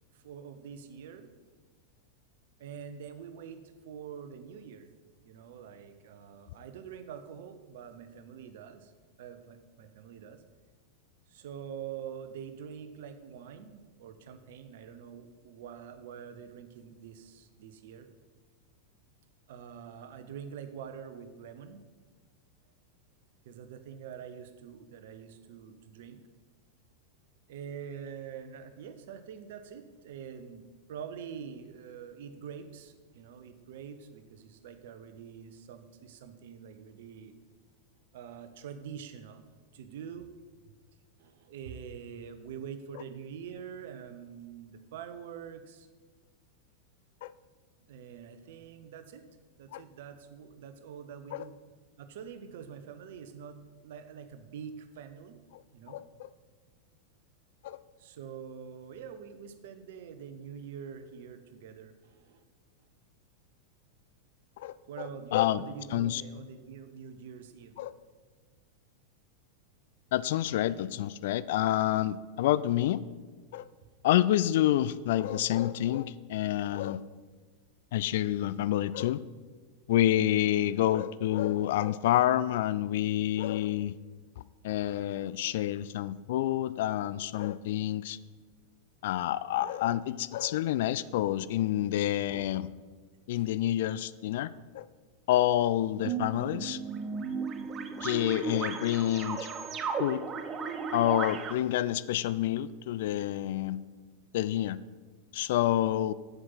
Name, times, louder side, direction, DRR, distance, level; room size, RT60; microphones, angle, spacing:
voice 1, 0.1-1.3 2.6-4.9 5.2-8.9 9.2-10.4 11.3-18.1 19.5-21.8 23.4-26.2 27.5-37.3 38.1-39.5 39.7-40.3 41.2-45.9 47.9-49.2 49.6-51.6 52.0-55.4 55.7-56.0 58.0-62.4 64.9-67.9 73.8-73.9 93.3-93.4, right 7 dB, 55° right, 9 dB, 0.8 m, -45 dB
voice 2, 55.9-56.3 57.6-57.8 64.6-64.7 65.3-65.6 65.9-66.2 67.8-67.9 70.1-73.0 73.5-73.7 74.0-77.0 77.9-79.2 79.9-83.9 84.6-88.2 89.0-92.7 93.3-94.5 94.7-94.8 95.3-96.8 98.0-99.5 100.0-100.2 100.9-103.8 104.3-104.8 105.3-106.1, left 13 dB, 55° left, 17 dB, 0.3 m, -28 dB
sound 1, 96.0-101.5, right 5 dB, 25° right, 0.7 m, -35 dB
8.1 x 7.7 x 5.7 m, 1.4 s
figure-of-eight pair, 90°, 0 cm